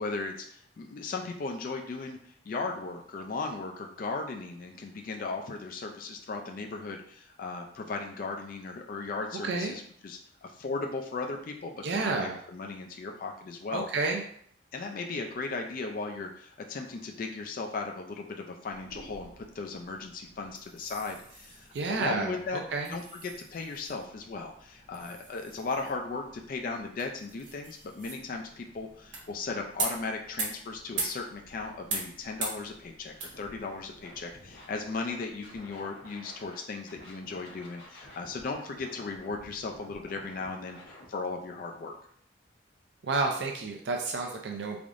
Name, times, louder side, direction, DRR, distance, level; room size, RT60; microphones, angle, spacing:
voice 1, 0.0-2.2 2.5-13.9 14.7-22.6 22.9-41.9, left 3 dB, 45° left, 3 dB, 0.3 m, -37 dB
voice 2, 9.4-9.7 11.8-12.4 13.7-14.2 21.7-22.9 43.0-44.8, right 3 dB, 65° right, 2 dB, 0.4 m, -30 dB
sound 1, 18.7-35.6, right 4 dB, 80° right, 1.1 m, -42 dB
Scratching (performance technique), 33.3-33.7 34.0-36.6 36.9-41.1, left 1 dB, 75° left, 1.2 m, -51 dB
3.6 x 3.4 x 2.5 m, 0.63 s
head